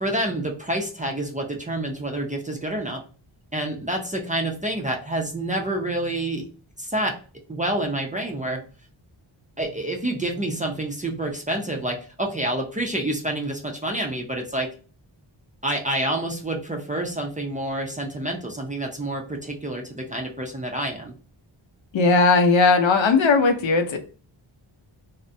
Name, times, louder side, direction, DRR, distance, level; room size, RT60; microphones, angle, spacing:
voice 1, 0.0-3.0 3.5-6.5 6.8-7.1 7.5-8.6 9.6-14.7 15.6-21.1, right 1 dB, 20° right, 1 dB, 0.4 m, -28 dB
voice 2, 21.9-24.0, left 4 dB, 75° left, 7 dB, 0.6 m, -18 dB
2.4 x 2.0 x 2.5 m, 0.38 s
wide cardioid pair, 95°, 48 cm